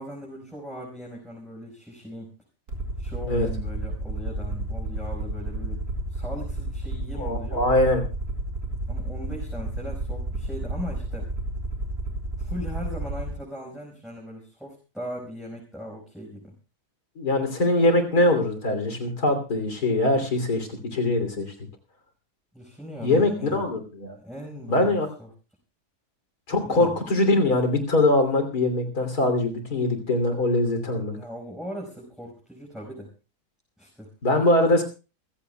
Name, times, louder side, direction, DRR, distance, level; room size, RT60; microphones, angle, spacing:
voice 1, 0.0-2.3 3.0-5.8 6.1-7.6 8.9-11.3 12.4-16.5 22.5-23.6 24.1-25.3 26.6-26.9 31.1-33.1 33.8-34.1, equal, ahead, -3 dB, 5.0 m, -39 dB
Aircraft, 2.7-13.3, right 1 dB, 75° right, 5.0 m, -31 dB
voice 2, 7.2-8.0 17.2-21.5 23.0-24.2 24.7-25.1 26.5-31.2 34.2-34.8, left 2 dB, 75° left, 7 dB, 3.5 m, -22 dB
27.5 x 15.5 x 2.3 m, 0.32 s
omnidirectional pair, 1.6 m